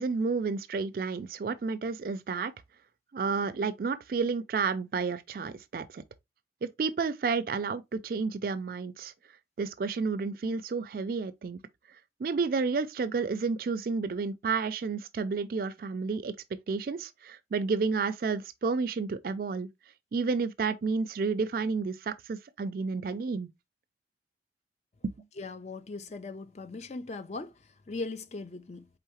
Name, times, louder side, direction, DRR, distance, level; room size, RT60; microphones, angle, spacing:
voice 1, 0.0-2.5 3.1-6.0 6.6-9.1 9.6-11.6 12.2-16.3 16.7-19.7 20.1-23.5, right 4 dB, 55° right, 0.4 m, -31 dB
voice 2, 25.4-28.9, left 3 dB, 40° left, 0.5 m, -39 dB
4.6 x 3.5 x 2.9 m
head